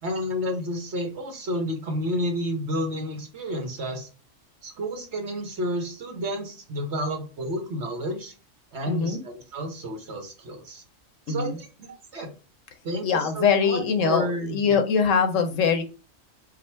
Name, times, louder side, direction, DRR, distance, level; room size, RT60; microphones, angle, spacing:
voice 1, 0.0-4.1 4.6-8.3 8.7-10.8 11.3-12.3 12.8-14.8, equal, 55° right, 3 dB, 1.2 m, -31 dB
voice 2, 8.8-9.2 11.3-11.6 13.0-15.8, left 6 dB, 70° left, 7 dB, 1.0 m, -23 dB
4.9 x 2.1 x 4.4 m, 0.35 s
omnidirectional pair, 1.4 m